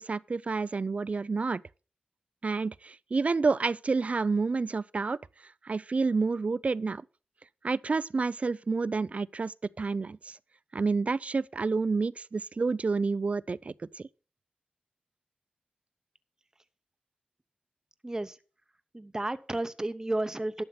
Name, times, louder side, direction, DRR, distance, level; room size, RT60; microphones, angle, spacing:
voice 1, 0.0-1.6 2.4-5.2 5.6-7.0 7.6-10.4 10.7-14.1, right 4 dB, 50° right, 0.4 m, -29 dB
voice 2, 18.0-18.4 18.9-20.6, right 1 dB, 20° right, 0.8 m, -32 dB
11.5 x 6.5 x 5.8 m
cardioid pair, 55°, 3 cm